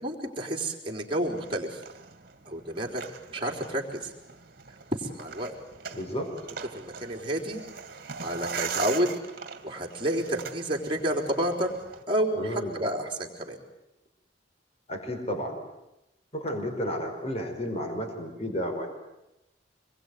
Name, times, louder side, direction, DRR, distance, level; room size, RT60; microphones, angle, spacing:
voice 1, 0.0-1.8 2.5-3.0 3.3-4.1 4.9-5.5 6.1-6.2 6.7-7.6 8.2-9.1 9.6-11.7 12.1-13.6, right 1 dB, 30° right, 1 dB, 4.1 m, -30 dB
sound 1, 1.2-12.0, right 6 dB, 55° right, 2.3 m, -41 dB
voice 2, 5.9-6.3 12.4-12.9 14.9-15.6 16.3-18.9, equal, 35° left, 4 dB, 4.9 m, -32 dB
26.5 x 22.0 x 9.4 m, 0.92 s
head